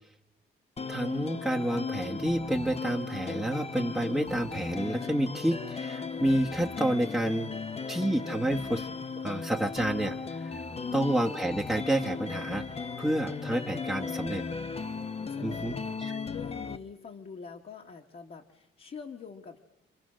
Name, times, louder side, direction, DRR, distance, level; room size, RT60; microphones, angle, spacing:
sound 1, 0.8-16.8, left 5 dB, 30° left, 0.9 m, -36 dB
voice 1, 0.9-7.5 7.9-8.9 9.2-10.5 10.9-12.6 13.0-14.4 15.4-16.1, right 1 dB, 5° right, -2 dB, 1.2 m, -29 dB
voice 2, 7.4-7.7 10.7-11.1 13.6-14.3 15.2-19.6, left 6 dB, 50° left, 0 dB, 1.8 m, -46 dB
27.5 x 26.5 x 6.4 m, 0.96 s
cardioid pair, 90°, 20 cm